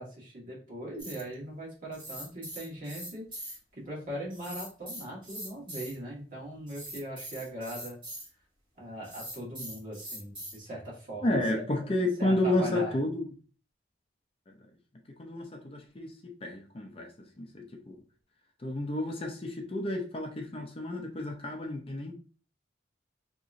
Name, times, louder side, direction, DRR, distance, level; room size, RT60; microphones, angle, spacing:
voice 1, 0.0-8.0 8.8-11.6 12.2-12.9, right 1 dB, 45° right, -4 dB, 1.5 m, -40 dB
sound 1, 1.0-1.3 1.9-3.6 4.3-5.9 6.7-8.3 9.0-10.6, right 1 dB, 30° right, 1.7 m, -42 dB
voice 2, 11.2-13.2 14.5-14.6 15.2-17.1 17.4-17.9 18.6-22.1, left 1 dB, 30° left, 3 dB, 0.5 m, -31 dB
3.7 x 2.9 x 2.5 m, 0.38 s
head